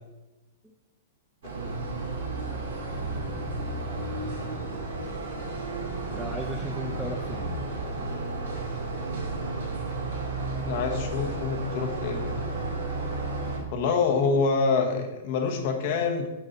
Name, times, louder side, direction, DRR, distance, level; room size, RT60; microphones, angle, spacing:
sound 1, 1.4-13.6, right 2 dB, 80° right, 2.5 m, -32 dB
voice 1, 3.0-3.9 6.1-7.5, equal, 5° right, 0 dB, 0.6 m, -37 dB
voice 2, 10.6-12.4 13.7-16.3, left 4 dB, 55° left, 4 dB, 1.2 m, -26 dB
8.0 x 4.0 x 4.0 m, 1.1 s
hypercardioid pair, 130°, 0 cm